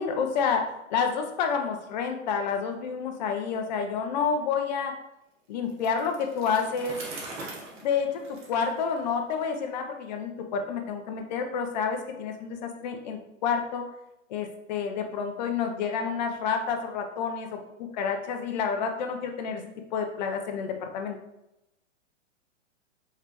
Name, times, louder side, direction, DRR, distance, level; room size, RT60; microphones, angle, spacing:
voice 1, 0.0-4.9 5.5-7.0 7.8-13.8 14.3-21.2, left 6 dB, 35° left, 4 dB, 0.6 m, -29 dB
Bicycle, 5.7-9.5, right 2 dB, 35° right, 1.1 m, -42 dB
4.9 x 3.3 x 2.9 m, 0.87 s
hypercardioid pair, 145°, 39 cm